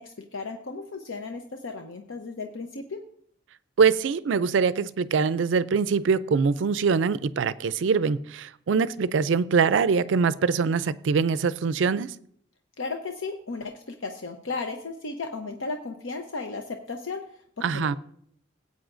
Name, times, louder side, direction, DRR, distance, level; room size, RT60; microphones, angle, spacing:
voice 1, 0.0-3.0 12.8-17.2 17.6-18.0, left 3 dB, 80° left, 4 dB, 0.8 m, -35 dB
voice 2, 3.8-12.1 17.6-18.0, right 5 dB, 70° right, 16 dB, 0.4 m, -23 dB
17.5 x 8.4 x 2.6 m, 0.66 s
head